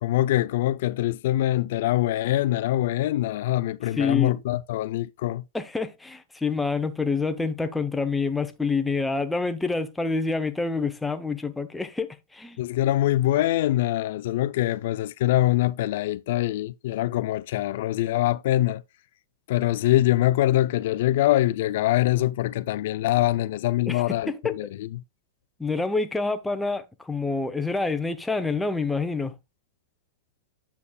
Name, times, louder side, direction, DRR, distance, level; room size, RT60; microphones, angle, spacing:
voice 1, 0.0-5.4 12.6-18.8 19.5-25.0, left 14 dB, 60° left, 0.3 m, -24 dB
voice 2, 4.0-4.4 5.5-12.6 23.9-24.5 25.6-29.3, left 4 dB, 5° left, 0.6 m, -27 dB
8.5 x 7.0 x 2.2 m
supercardioid pair, 145°, 0 cm